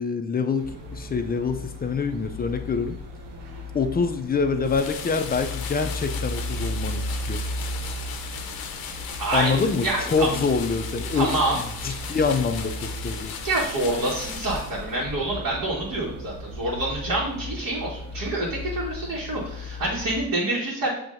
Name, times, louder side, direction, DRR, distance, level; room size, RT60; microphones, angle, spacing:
voice 1, 0.0-3.0 3.7-7.4 9.3-13.3, left 5 dB, 25° left, 7 dB, 0.3 m, -26 dB
construction site, 0.6-20.2, left 1 dB, 85° right, 1.0 m, -36 dB
sound 1, 4.6-15.0, left 6 dB, 60° left, 0.7 m, -36 dB
voice 2, 9.2-9.5 9.8-10.3 11.1-11.6 11.9-12.0 13.4-20.9, right 2 dB, 55° right, -6 dB, 1.5 m, -27 dB
7.4 x 2.8 x 2.5 m, 0.76 s
cardioid pair, 115°, 40 cm